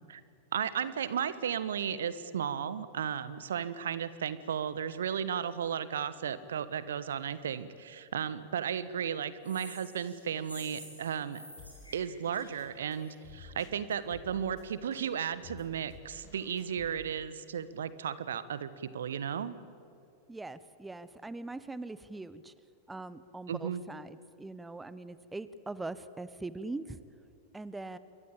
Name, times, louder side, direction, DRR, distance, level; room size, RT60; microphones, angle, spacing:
voice 1, 0.5-11.4 11.9-19.6 23.5-23.8, right 8 dB, 65° right, 15 dB, 1.2 m, -34 dB
sound 1, 9.4-13.2, equal, 90° left, 7.8 m, -50 dB
Drum kit, 11.6-16.9, left 4 dB, 45° left, 5.4 m, -53 dB
voice 2, 20.3-22.5 22.9-27.0 27.5-28.0, right 2 dB, 10° right, 15 dB, 1.0 m, -42 dB
28.0 x 22.5 x 8.8 m, 2.5 s
figure-of-eight pair, 90°, 0 cm